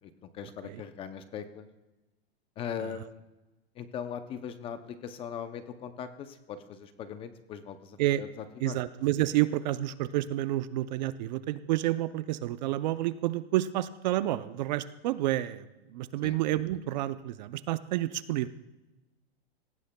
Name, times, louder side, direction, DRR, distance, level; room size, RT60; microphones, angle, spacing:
voice 1, 0.0-1.7 2.6-3.2 3.8-8.8 16.2-16.4, left 8 dB, 15° left, 10 dB, 0.5 m, -40 dB
voice 2, 8.6-18.5, right 15 dB, 45° right, 15 dB, 0.5 m, -29 dB
18.5 x 15.5 x 2.2 m, 1.0 s
supercardioid pair, 150°, 32 cm